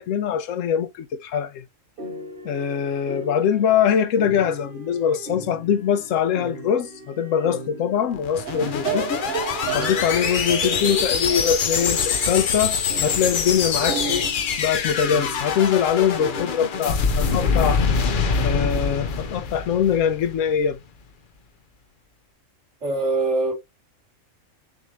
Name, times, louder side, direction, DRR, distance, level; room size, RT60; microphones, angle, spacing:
voice 1, 0.0-1.6 2.4-9.2 9.7-14.3 14.6-17.8 18.4-20.8, left 8 dB, 80° left, 1.0 m, -23 dB
sound 1, 2.0-19.4, equal, 40° right, 2.2 m, -39 dB
sound 2, 8.1-20.5, left 6 dB, 55° left, 0.6 m, -24 dB
sound 3, 8.3-14.3, right 10 dB, 75° right, 1.0 m, -32 dB
voice 2, 22.8-23.5, right 2 dB, 60° right, 2.9 m, -22 dB
6.4 x 2.7 x 3.0 m
omnidirectional pair, 1.3 m